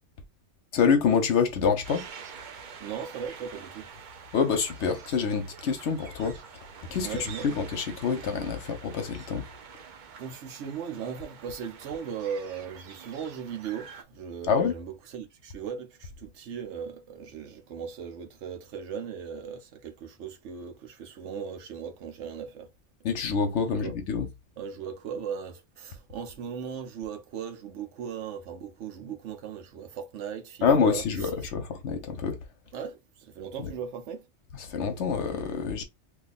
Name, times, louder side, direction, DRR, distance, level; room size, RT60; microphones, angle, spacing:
voice 1, 0.7-2.1 4.3-9.4 14.5-14.8 23.0-24.3 30.6-32.4 33.6-33.7 34.5-35.8, left 6 dB, 75° left, 1.0 m, -26 dB
sound 1, 1.8-14.0, right 6 dB, 55° right, 0.6 m, -47 dB
voice 2, 2.8-3.9 7.0-7.5 10.2-22.7 23.8-23.9 24.6-31.0 32.7-34.3, right 7 dB, 80° right, 1.0 m, -38 dB
2.7 x 2.3 x 4.0 m
omnidirectional pair, 1.2 m